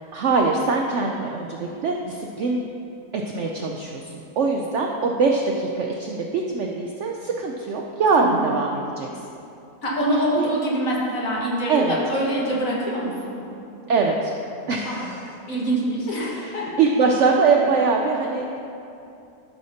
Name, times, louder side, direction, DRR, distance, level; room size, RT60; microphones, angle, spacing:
voice 1, 0.1-2.6 3.1-9.1 10.3-10.5 11.7-12.0 13.9-14.3 14.7-15.2 16.2-18.6, right 4 dB, 90° right, 1 dB, 0.6 m, -23 dB
voice 2, 9.8-13.4 14.8-15.1 15.5-16.7, right 1 dB, 55° left, -5 dB, 1.8 m, -25 dB
12.5 x 6.3 x 2.8 m, 2.7 s
omnidirectional pair, 1.8 m